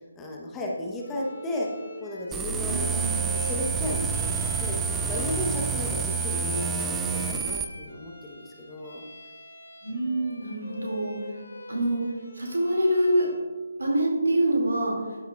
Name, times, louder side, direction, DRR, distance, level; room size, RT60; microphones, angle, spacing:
voice 1, 0.2-1.7 2.0-3.0 3.3-4.8 5.1-9.0, left 1 dB, 10° left, -2 dB, 0.9 m, -34 dB
Bowed string instrument, 1.0-13.5, left 1 dB, 80° left, 1.9 m, -45 dB
sound 1, 2.3-7.6, right 5 dB, 10° right, 0.3 m, -28 dB
voice 2, 2.7-3.1 9.8-11.1 11.7-12.0 12.3-13.3 13.8-14.9, right 1 dB, 85° right, -2 dB, 2.3 m, -25 dB
13.0 x 4.5 x 2.3 m, 1.3 s
figure-of-eight pair, 155°, 0 cm